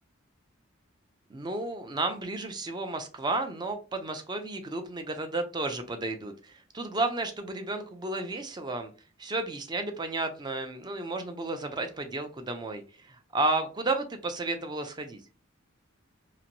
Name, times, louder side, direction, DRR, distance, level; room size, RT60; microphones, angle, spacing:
voice 1, 1.3-8.9 9.2-15.2, right 2 dB, 20° right, 0.4 m, -32 dB
2.9 x 2.5 x 2.6 m
head